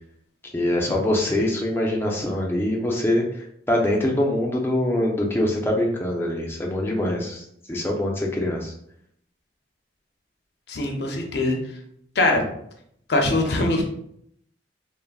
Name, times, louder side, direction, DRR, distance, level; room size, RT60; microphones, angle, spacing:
voice 1, 0.5-3.2 3.7-8.7, left 1 dB, 10° left, -1 dB, 0.4 m, -24 dB
voice 2, 10.7-11.6 12.2-12.5 13.1-13.8, left 2 dB, 60° left, 2 dB, 0.5 m, -22 dB
3.3 x 2.0 x 2.3 m, 0.71 s
head